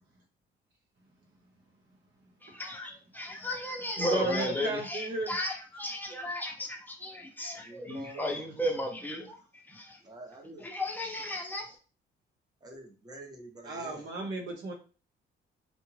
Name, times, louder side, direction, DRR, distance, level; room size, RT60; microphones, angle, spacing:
voice 1, 2.4-10.0 10.6-11.8, left 1 dB, 10° left, 0.7 m, -35 dB
voice 2, 4.0-5.3 13.6-14.7, right 2 dB, 70° right, 1.0 m, -33 dB
voice 3, 7.6-8.5 10.0-10.7 12.6-14.1, right 1 dB, 20° right, 0.9 m, -47 dB
2.5 x 2.2 x 3.2 m
cardioid pair, 90°, 20 cm